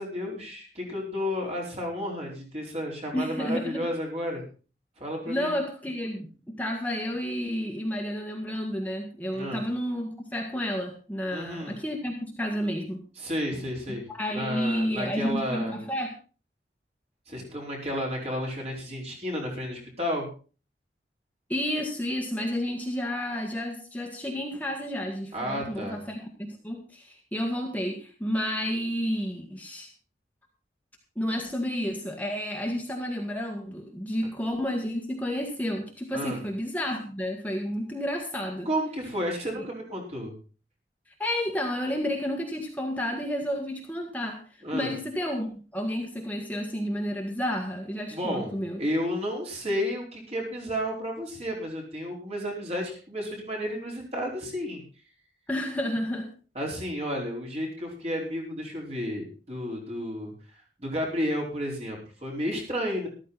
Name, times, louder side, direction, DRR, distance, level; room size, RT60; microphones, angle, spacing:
voice 1, 0.0-4.4 5.0-5.5 9.3-9.6 11.3-11.8 13.2-15.8 17.3-20.3 25.3-26.0 36.1-36.4 38.6-40.3 44.6-44.9 48.1-54.8 56.5-60.3 60.8-63.1, equal, 35° right, -1 dB, 4.7 m, -32 dB
voice 2, 3.1-3.9 5.2-13.0 14.1-16.1 21.5-29.9 31.1-38.7 41.2-44.4 44.7-48.8 55.5-56.3, equal, 10° left, 1 dB, 1.7 m, -31 dB
13.5 x 13.0 x 4.1 m, 0.37 s
head